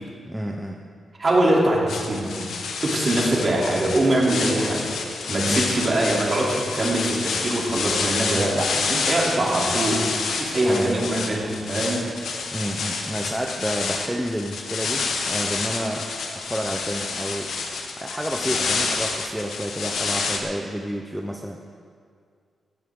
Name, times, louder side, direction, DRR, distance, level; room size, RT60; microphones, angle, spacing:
voice 1, 0.3-0.8 5.5-5.7 10.7-11.1 12.5-16.1 16.4-17.5 18.0-21.6, equal, 5° right, 1 dB, 0.8 m, -30 dB
voice 2, 1.2-2.4 2.8-4.8 5.3-10.1 10.4-12.0, right 1 dB, 35° right, -4 dB, 3.3 m, -23 dB
sound 1, 1.9-20.4, left 4 dB, 85° left, 1.5 m, -28 dB
17.5 x 14.0 x 3.8 m, 2.2 s
wide cardioid pair, 140°, 0 cm